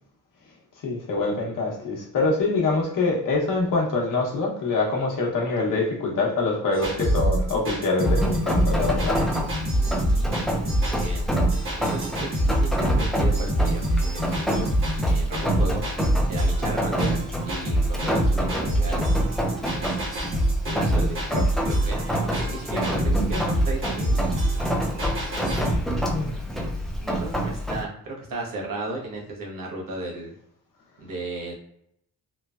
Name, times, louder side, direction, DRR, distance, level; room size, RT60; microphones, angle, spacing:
voice 1, 0.8-9.2 26.1-26.4, left 3 dB, 70° left, -1 dB, 0.8 m, -25 dB
sound 1, 6.7-25.8, right 1 dB, 40° right, 1.0 m, -25 dB
Rain, 8.0-27.8, right 1 dB, ahead, 0.3 m, -28 dB
voice 2, 9.8-14.7 15.0-15.8 16.3-19.1 19.4-19.7 20.6-24.3 26.3-30.3 31.0-31.5, right 2 dB, 80° right, -2 dB, 0.9 m, -35 dB
3.1 x 2.1 x 2.3 m, 0.73 s
wide cardioid pair, 155°, 33 cm